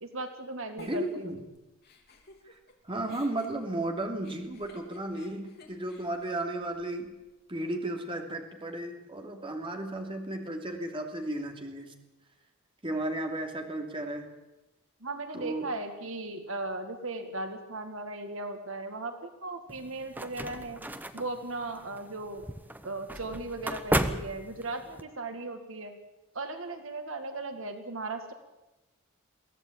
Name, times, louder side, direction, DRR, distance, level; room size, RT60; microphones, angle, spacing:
voice 1, 0.0-1.3 15.0-20.8 21.1-22.5 22.8-26.0 26.3-28.3, right 2 dB, 65° right, 7 dB, 2.1 m, -37 dB
Giggle, 0.8-2.7 3.1-7.3, left 3 dB, 50° left, 3.6 m, -55 dB
voice 2, 0.8-1.4 2.4-2.6 2.8-7.1 7.5-11.9 12.8-14.3 15.3-15.7, right 1 dB, 25° right, 3 dB, 3.0 m, -34 dB
sound 1, 19.7-25.0, right 1 dB, 10° right, 1.0 m, -34 dB
23.0 x 16.0 x 8.8 m, 1.0 s
head